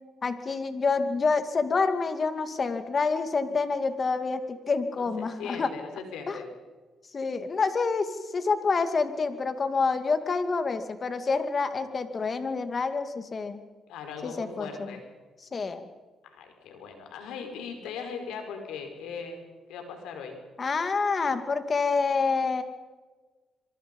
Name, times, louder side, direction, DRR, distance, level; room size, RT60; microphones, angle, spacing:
voice 1, 0.2-5.7 6.3-6.4 7.1-13.6 14.2-14.9 15.5-15.9 20.6-22.6, left 4 dB, 40° left, 9 dB, 2.4 m, -27 dB
voice 2, 5.0-6.5 13.9-15.0 16.2-20.4, left 5 dB, 90° left, 5 dB, 5.0 m, -39 dB
26.5 x 23.5 x 5.5 m, 1.3 s
cardioid pair, 90°, 0 cm